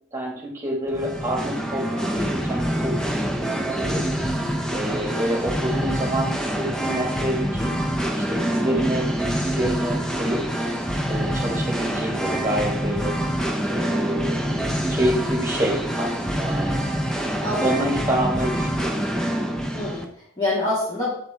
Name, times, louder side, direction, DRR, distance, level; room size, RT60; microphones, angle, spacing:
voice 1, 0.1-1.9 2.1-3.0 3.4-4.0 4.7-7.7 8.2-10.4 11.1-13.1 13.7-16.8 17.4-19.0, right 1 dB, 15° right, -2 dB, 1.9 m, -27 dB
Singing, 0.9-20.0, equal, 5° left, 0.5 m, -26 dB
voice 2, 17.4-17.9 19.7-21.1, left 2 dB, 25° left, -9 dB, 2.2 m, -27 dB
8.0 x 4.8 x 3.5 m, 0.66 s
head